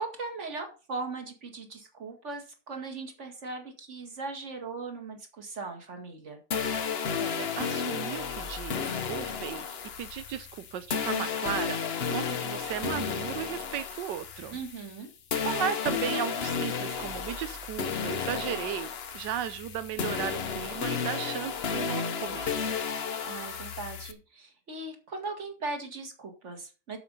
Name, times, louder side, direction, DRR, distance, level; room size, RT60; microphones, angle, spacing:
voice 1, 0.0-6.4 14.5-15.1 23.3-27.0, right 3 dB, 40° right, 5 dB, 2.3 m, -39 dB
sound 1, 6.5-15.0 15.3-24.1, left 6 dB, 45° left, 0.9 m, -33 dB
voice 2, 7.2-9.7 10.0-11.8 12.1-14.6 15.4-22.7, right 10 dB, 90° right, 12 dB, 1.4 m, -35 dB
8.4 x 7.2 x 5.4 m, 0.34 s
omnidirectional pair, 1.9 m